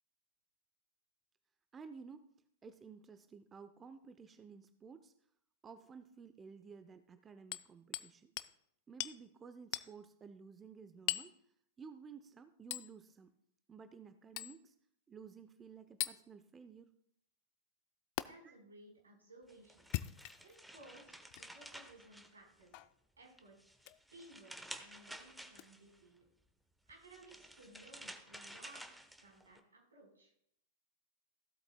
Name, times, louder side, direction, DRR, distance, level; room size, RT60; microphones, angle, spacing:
voice 1, 1.7-2.3 2.6-5.1 5.6-8.3 8.9-11.4 11.8-13.3 13.7-14.8 15.1-17.0 18.4-18.5, right 5 dB, 20° right, 10 dB, 0.6 m, -54 dB
Hammer, 7.5-8.1 8.4-8.5 9.0-9.2 9.7-9.9 11.1-11.3 12.7-12.9 14.4-14.6 16.0-16.2 18.2-18.3 19.8-20.6 21.3-21.5 22.7-22.9 23.8-24.0 25.5-25.6, left 18 dB, 50° left, 0.4 m, -40 dB
voice 2, 18.2-19.9 20.4-22.9 23.2-23.5 24.1-26.1 26.9-30.3, right 1 dB, 80° right, 0 dB, 4.1 m, -59 dB
sound 1, 19.5-22.8 23.3-26.0 26.9-29.6, right 1 dB, ahead, 0.9 m, -52 dB
15.5 x 8.1 x 2.2 m, 0.73 s
figure-of-eight pair, 100°, 0 cm